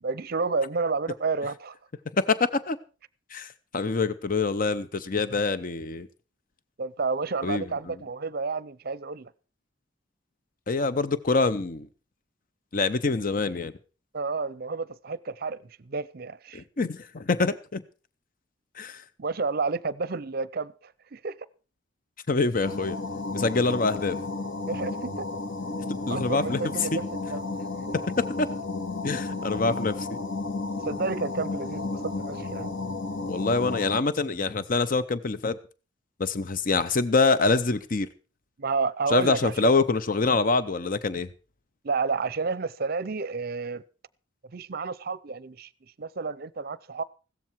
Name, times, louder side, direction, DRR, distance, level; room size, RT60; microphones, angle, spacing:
voice 1, 0.0-1.8 6.8-9.3 14.1-16.6 19.2-21.4 24.7-25.3 26.1-27.0 27.3-27.4 30.7-32.7 38.6-39.7 41.8-43.8 44.5-45.7 46.0-47.0, right 4 dB, 50° right, 0.7 m, -30 dB
voice 2, 2.2-2.8 3.3-6.1 7.4-7.6 10.7-11.9 12.7-13.7 16.5-17.8 18.8-19.0 22.3-23.0 23.3-24.2 26.1-27.0 27.9-28.5 29.0-30.2 33.3-35.6 36.2-38.1 39.1-41.3, left 3 dB, 45° left, 0.7 m, -25 dB
sound 1, 22.6-34.0, left 3 dB, 80° left, 2.2 m, -33 dB
16.0 x 13.5 x 4.6 m
head